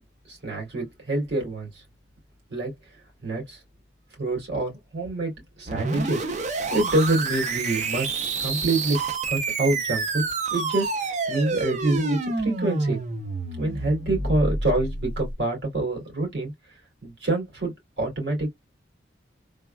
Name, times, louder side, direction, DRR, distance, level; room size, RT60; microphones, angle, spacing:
voice 1, 0.3-1.8 2.5-3.6 4.1-6.3 6.7-9.0 9.3-13.0 13.6-18.5, right 2 dB, 70° right, 2.2 m, -27 dB
sound 1, 5.7-15.3, right 3 dB, 40° right, 0.5 m, -28 dB
3.5 x 2.2 x 2.2 m
head